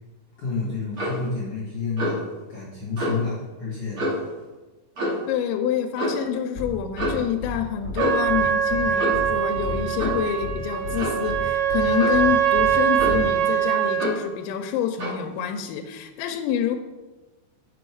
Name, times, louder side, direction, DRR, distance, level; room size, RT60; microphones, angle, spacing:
voice 1, 0.4-4.0, left 4 dB, 50° left, -7 dB, 1.9 m, -30 dB
Clock, 0.9-1.2 2.0-2.3 3.0-3.2 4.0-4.3 5.0-5.3 6.0-6.2 7.0-7.3 8.0-8.3 9.0-9.3 10.0-10.2 11.0-11.3 12.0-12.2 13.0-13.4 14.0-14.3 15.0-15.2, equal, 35° right, 2.6 m, -28 dB
voice 2, 5.3-16.8, left 9 dB, 85° left, 5 dB, 2.8 m, -27 dB
sound 1, 6.5-6.7 7.0-7.1 7.4-7.5 7.8-8.0 8.3-8.4 8.7-8.8 9.1-9.2 9.5-10.1 10.4-10.5 10.8-11.0 11.3-11.4 11.7-11.8 12.1-12.2 12.5-12.7 13.0-13.2, left 5 dB, 5° right, 0.9 m, -32 dB
Trumpet, 8.0-14.2, right 8 dB, 75° right, 2.4 m, -23 dB
6.9 x 5.9 x 4.7 m, 1.1 s
omnidirectional pair, 5.3 m